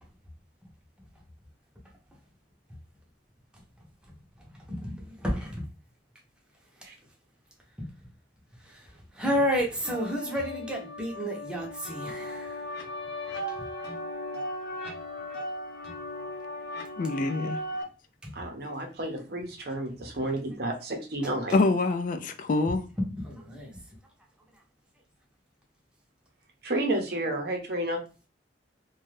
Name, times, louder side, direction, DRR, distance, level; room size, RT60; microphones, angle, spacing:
voice 1, 4.7-5.6 7.8-7.9 8.6-8.9 9.1-12.6 18.2-18.3 23.1-23.7, equal, 5° right, 0.7 m, -31 dB
sound 1, 9.8-17.8, left 1 dB, 65° left, 0.8 m, -37 dB
voice 2, 17.0-17.6 21.5-22.8, left 3 dB, 45° left, 0.3 m, -25 dB
voice 3, 18.3-21.6 26.6-28.0, right 1 dB, 60° right, 0.7 m, -31 dB
2.6 x 2.3 x 3.1 m
head